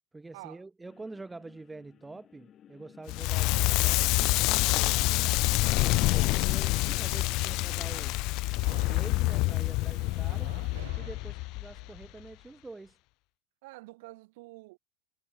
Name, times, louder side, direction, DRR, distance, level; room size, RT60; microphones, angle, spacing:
voice 1, 0.1-5.2 5.8-8.2 8.7-10.5 11.0-13.0, right 3 dB, 5° right, 1.4 m, -46 dB
sound 1, 0.8-8.1, left 10 dB, 20° left, 4.2 m, -50 dB
Crackle, 3.1-12.1, left 23 dB, 35° left, 0.4 m, -27 dB
voice 2, 5.6-6.5 10.2-10.7 13.6-14.8, right 22 dB, 55° right, 7.5 m, -49 dB
sound 2, 7.0-12.2, right 16 dB, 70° right, 7.5 m, -55 dB
supercardioid pair, 180°, 0 cm